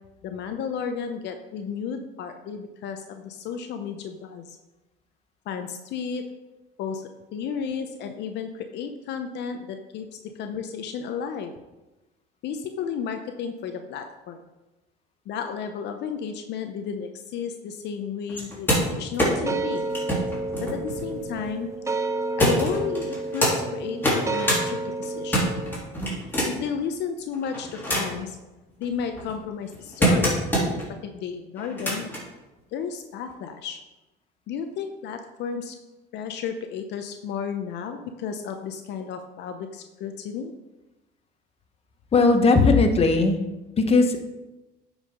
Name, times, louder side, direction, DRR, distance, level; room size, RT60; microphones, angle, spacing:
voice 1, 0.2-4.6 5.5-6.3 6.8-11.5 12.4-14.4 15.3-19.9 20.6-21.7 22.4-25.6 26.5-28.4 28.8-30.4 30.9-32.1 32.7-33.8 34.5-35.7 36.1-40.5, left 6 dB, 65° left, 6 dB, 0.8 m, -33 dB
sound 1, 18.3-21.6 22.4-23.5 23.9-24.6 25.0-26.7 27.3-28.3 28.8-30.9 31.6-32.2 33.3-33.4, equal, 10° left, 3.3 m, -26 dB
sound 2, 19.2-25.8, right 3 dB, 15° right, 0.5 m, -31 dB
voice 2, 42.1-43.4 43.8-44.2, left 3 dB, 30° left, 6 dB, 1.1 m, -18 dB
9.0 x 4.9 x 5.1 m, 1.1 s
cardioid pair, 110°, 19 cm